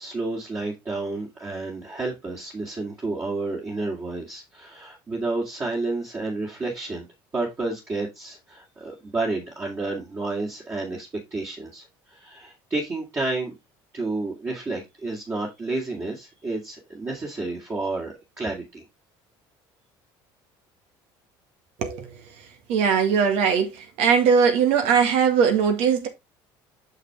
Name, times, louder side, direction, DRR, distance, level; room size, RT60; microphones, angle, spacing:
voice 1, 0.0-7.1 7.3-13.5 13.9-18.9, right 3 dB, 25° right, 2.3 m, -30 dB
voice 2, 21.8-22.1 22.7-26.1, right 6 dB, 75° right, 1.9 m, -20 dB
6.5 x 6.2 x 3.5 m
supercardioid pair, 110°, 10 cm